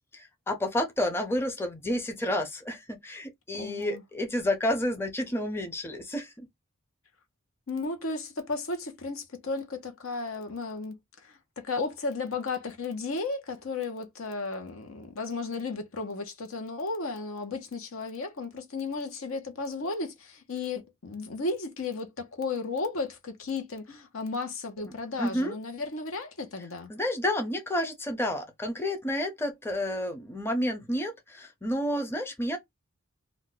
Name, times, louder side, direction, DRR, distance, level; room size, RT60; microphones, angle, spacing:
voice 1, 0.1-6.5 25.2-25.5 26.9-32.6, left 1 dB, 10° left, 0.5 m, -30 dB
voice 2, 3.6-4.0 7.7-11.0 11.2-26.9, left 3 dB, 85° left, 0.8 m, -34 dB
2.4 x 2.3 x 3.9 m
head